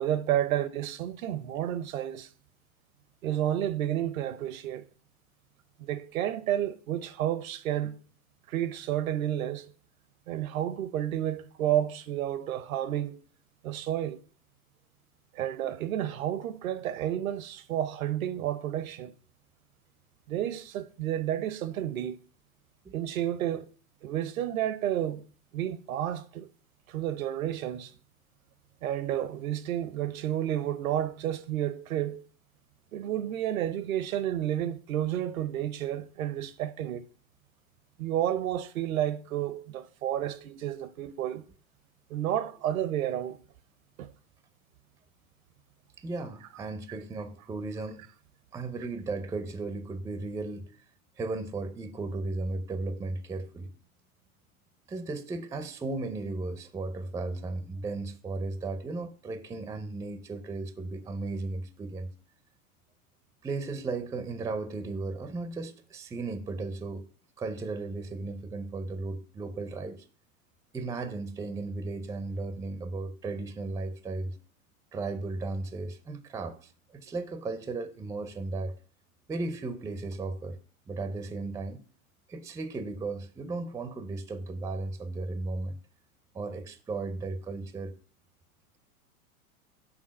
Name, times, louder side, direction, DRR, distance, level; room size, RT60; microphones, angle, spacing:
voice 1, 0.0-2.3 3.2-4.9 5.8-8.0 8.5-9.7 10.3-13.2 13.6-14.2 15.3-19.1 20.3-22.2 22.9-23.7 24.0-25.2 25.5-26.5 26.9-27.9 28.8-32.2 32.9-37.0 38.0-41.4 42.1-43.4 44.0-44.1, right 11 dB, 70° right, 0.8 m, -31 dB
voice 2, 46.0-48.0 48.5-50.7 51.2-53.7 54.9-62.1 63.4-67.1 67.4-70.0 70.7-74.4 74.9-78.8 79.3-80.6 80.9-81.8 82.3-85.8 86.3-88.0, right 3 dB, 10° right, 0.5 m, -35 dB
6.3 x 3.6 x 6.2 m
hypercardioid pair, 100°, 43 cm